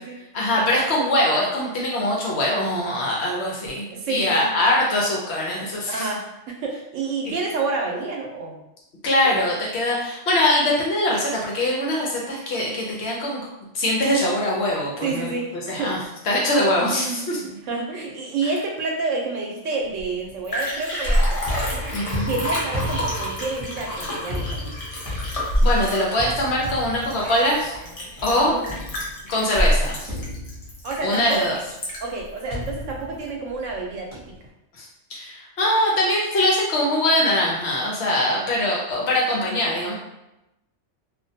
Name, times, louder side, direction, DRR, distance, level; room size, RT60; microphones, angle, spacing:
voice 1, 0.3-6.1 9.0-13.4 13.7-15.3 15.7-16.0 16.3-17.4 18.4-18.5 21.9-22.4 25.2-27.8 28.2-28.5 29.3-30.1 31.0-31.6 34.7-39.9, left 1 dB, 65° left, -2 dB, 0.9 m, -22 dB
voice 2, 3.9-4.7 5.9-8.6 9.2-9.3 15.0-16.0 16.7-21.4 21.7-24.8 28.2-28.6 30.8-31.4 32.0-34.3, right 3 dB, 90° right, 0 dB, 1.0 m, -29 dB
Liquid, 20.0-20.1 20.3-32.2 32.7-32.8, equal, 40° left, 0.5 m, -26 dB
sound 1, 21.4-29.4 30.1-31.1 32.5-33.8 34.1-34.5, left 1 dB, 25° right, 0.9 m, -34 dB
2.5 x 2.1 x 2.7 m, 0.92 s
omnidirectional pair, 1.3 m